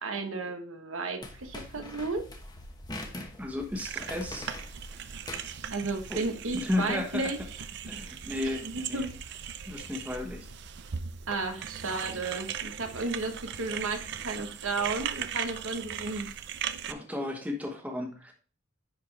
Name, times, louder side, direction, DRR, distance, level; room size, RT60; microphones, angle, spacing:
voice 1, 0.0-2.2 5.7-7.4 8.4-9.1 11.3-16.3, right 3 dB, 75° right, 6 dB, 1.1 m, -33 dB
sound 1, 1.2-11.0, equal, 65° left, 1.2 m, -51 dB
sound 2, 1.2-6.2, left 2 dB, 20° left, 1.0 m, -44 dB
voice 2, 3.4-4.5 6.1-6.2 6.5-7.3 7.9-9.1 9.6-10.5 16.9-18.3, left 1 dB, 5° right, 2 dB, 1.2 m, -34 dB
sound 3, 3.7-16.9, right 8 dB, 55° right, 0.5 m, -39 dB
10.0 x 4.5 x 3.3 m, 0.39 s
head